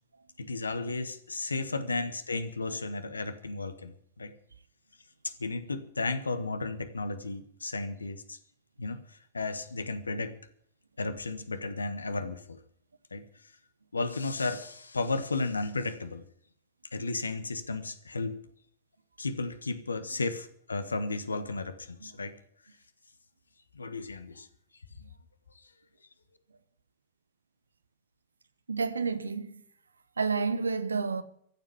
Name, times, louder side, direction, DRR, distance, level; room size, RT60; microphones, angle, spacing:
voice 1, 0.4-4.3 5.2-8.4 8.8-10.3 11.0-12.6 13.1-13.2 13.9-16.2 16.9-18.4 19.2-22.3 23.7-24.5 25.5-25.6, left 3 dB, 75° left, 1.3 m, -34 dB
voice 2, 28.7-29.6 30.2-31.2, right 4 dB, 75° right, 1.1 m, -30 dB
15.0 x 7.5 x 9.8 m
figure-of-eight pair, 90°, 0 cm